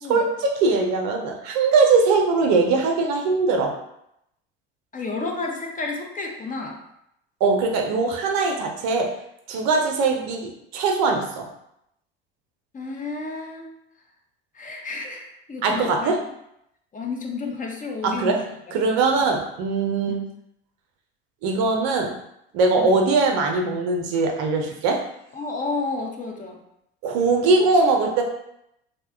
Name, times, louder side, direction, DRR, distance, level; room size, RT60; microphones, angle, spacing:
voice 1, 0.1-3.7 7.4-9.1 9.5-11.5 15.6-16.2 18.0-18.4 18.7-20.2 21.4-22.1 22.5-25.0 27.0-28.2, right 3 dB, 60° right, 2 dB, 0.6 m, -21 dB
voice 2, 4.9-6.8 12.7-13.7 14.5-16.2 16.9-18.6 20.1-20.2 22.8-23.0 25.3-26.6, left 3 dB, 25° left, 1 dB, 0.6 m, -31 dB
2.7 x 2.2 x 3.4 m, 0.79 s
hypercardioid pair, 65°, 31 cm